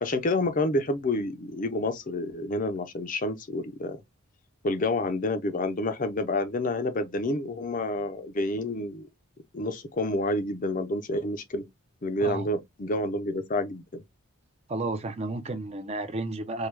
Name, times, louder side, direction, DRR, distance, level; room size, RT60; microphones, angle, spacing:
voice 1, 0.0-4.0 4.6-9.1 9.5-11.7 12.0-14.0, left 2 dB, 35° left, 0.5 m, -29 dB
voice 2, 14.7-16.7, right 2 dB, 30° right, 0.5 m, -32 dB
4.6 x 2.2 x 3.3 m
head